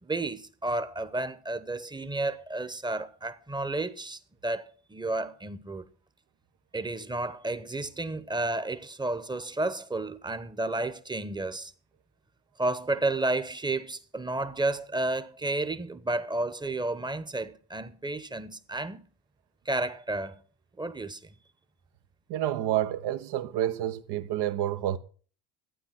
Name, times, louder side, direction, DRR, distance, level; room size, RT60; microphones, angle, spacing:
voice 1, 0.0-5.9 6.7-11.7 12.6-19.0 19.6-20.4 20.8-21.2, right 2 dB, 10° right, 1.0 m, -31 dB
voice 2, 22.3-25.0, right 12 dB, 65° right, 1.1 m, -29 dB
12.5 x 8.8 x 5.9 m
supercardioid pair, 75°, 42 cm